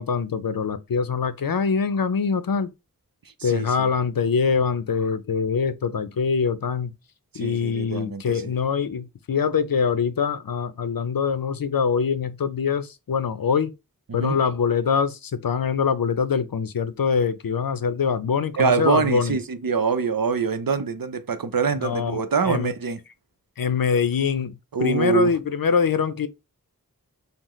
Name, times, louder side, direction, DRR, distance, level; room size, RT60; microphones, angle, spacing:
voice 1, 0.0-2.7 3.4-6.9 7.3-13.7 14.1-19.4 21.8-22.7 23.6-26.3, left 6 dB, 75° left, 0.5 m, -24 dB
voice 2, 3.4-3.9 7.3-8.5 14.1-14.4 18.5-23.0 24.7-25.3, right 5 dB, 70° right, 0.6 m, -24 dB
5.5 x 2.1 x 3.1 m
wide cardioid pair, 40°, 35 cm